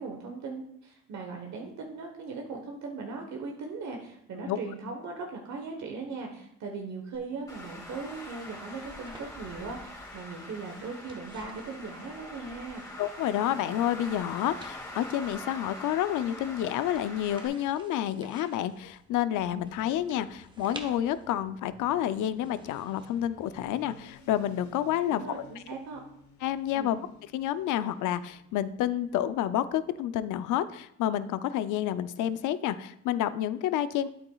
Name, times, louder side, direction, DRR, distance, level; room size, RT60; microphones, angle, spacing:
voice 1, 0.0-12.8 25.1-26.0 26.7-26.9, right 4 dB, 65° right, 2 dB, 1.1 m, -39 dB
sound 1, 7.1-24.4, right 2 dB, 15° right, 1.0 m, -54 dB
Traffic noise roadway noise, 7.5-17.5, left 1 dB, 10° left, 2.0 m, -44 dB
voice 2, 13.0-25.4 26.4-27.0 27.3-34.1, left 11 dB, 80° left, 13 dB, 0.5 m, -29 dB
Motorcycle, 18.7-30.4, left 5 dB, 65° left, 1.3 m, -57 dB
8.8 x 7.9 x 2.3 m, 0.76 s
cardioid pair, 90°, 30 cm